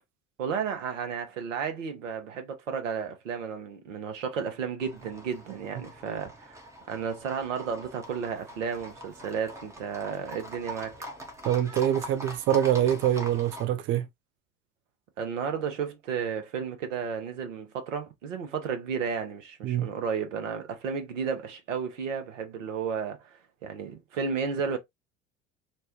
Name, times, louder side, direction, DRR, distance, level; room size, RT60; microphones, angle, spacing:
voice 1, 0.4-6.6 6.9-11.0 15.2-23.3 23.6-24.8, right 6 dB, 70° right, 0.9 m, -33 dB
Livestock farm animals working animals, 4.8-13.7, equal, 5° right, 0.7 m, -43 dB
voice 2, 11.5-14.0 19.6-19.9, right 11 dB, 35° right, 0.4 m, -25 dB
3.2 x 2.2 x 2.8 m
figure-of-eight pair, 65°, 39 cm